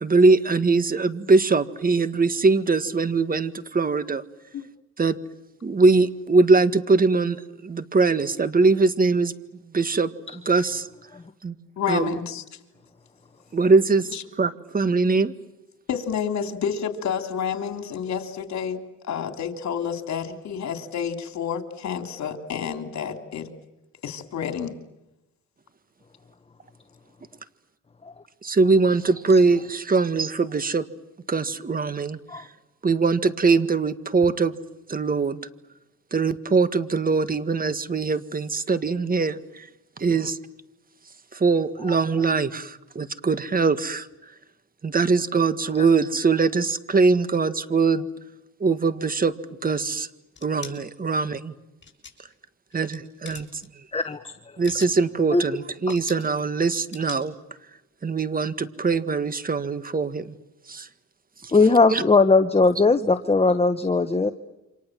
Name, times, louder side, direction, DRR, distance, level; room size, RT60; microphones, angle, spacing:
voice 1, 0.0-4.2 5.0-5.2 5.6-9.3 9.7-10.1 10.5-10.9 11.4-11.5 11.9-12.2 13.5-14.1 14.4-15.3 28.4-30.8 31.3-32.2 32.8-34.5 34.9-35.4 36.1-39.4 40.0-40.4 41.3-44.1 44.8-48.1 48.6-49.3 49.6-50.1 50.4-51.5 52.7-53.5 54.6-57.3 58.0-60.3 60.7-60.9 61.9-62.0, right 4 dB, 30° right, 13 dB, 1.7 m, -22 dB
voice 2, 11.8-12.4 14.1-14.2 15.9-18.8 19.0-23.5 24.0-24.7, left 7 dB, 65° left, 6 dB, 3.4 m, -29 dB
sound 1, 50.3-50.7 51.8-52.3 52.7-53.0 53.2-53.7 54.4-55.0 55.9-56.3 56.9-57.2, left 6 dB, 40° left, 6.9 m, -41 dB
voice 3, 53.9-54.3 55.3-55.4 61.5-64.3, left 3 dB, 20° left, 10 dB, 1.3 m, -19 dB
29.0 x 26.0 x 7.6 m, 0.95 s
cardioid pair, 90°, 30 cm